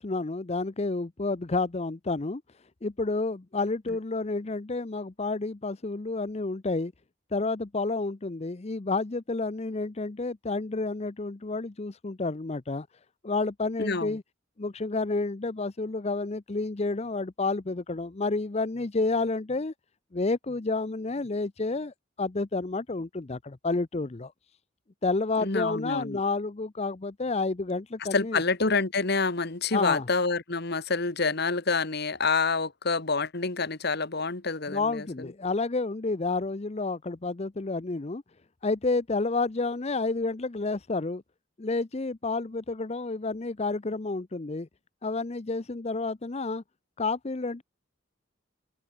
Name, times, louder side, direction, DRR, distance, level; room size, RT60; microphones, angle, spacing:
voice 1, 0.0-2.4 2.8-6.9 7.3-12.9 13.2-14.2 14.6-19.7 20.1-24.3 25.0-28.4 29.7-30.0 34.7-38.2 38.6-41.2 41.6-44.7 45.0-46.6 47.0-47.6, left 3 dB, 30° left, 0.6 m, -30 dB
voice 2, 13.8-14.2 25.4-26.2 28.0-35.3, left 4 dB, 50° left, 1.6 m, -27 dB
open air
head